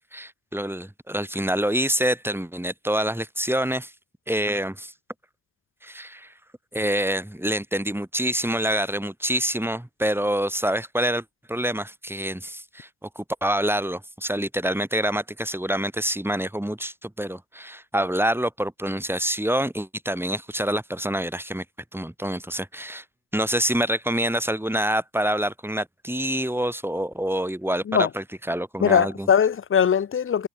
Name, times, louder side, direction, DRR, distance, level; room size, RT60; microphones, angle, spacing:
voice 1, 0.1-3.9 4.3-4.9 5.8-6.3 6.7-21.6 21.9-23.0 23.3-29.3, right 1 dB, 5° right, 3.2 m, -26 dB
voice 2, 28.8-30.5, left 8 dB, 30° left, 0.6 m, -20 dB
hypercardioid pair, 45°, 41 cm